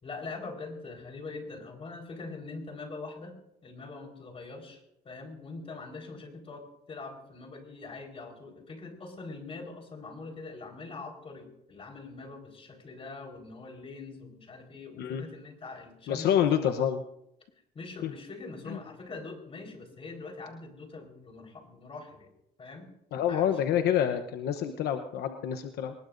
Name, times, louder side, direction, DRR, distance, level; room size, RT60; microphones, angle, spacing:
voice 1, 0.0-3.3 3.6-16.4 17.7-22.3 22.6-22.9 23.3-23.7, left 3 dB, 35° left, 3 dB, 4.6 m, -43 dB
voice 2, 16.1-17.0 18.0-18.1 18.7-18.8 23.1-25.9, left 9 dB, 75° left, 7 dB, 1.0 m, -27 dB
24.0 x 20.5 x 2.7 m, 0.80 s
cardioid pair, 110°, 17 cm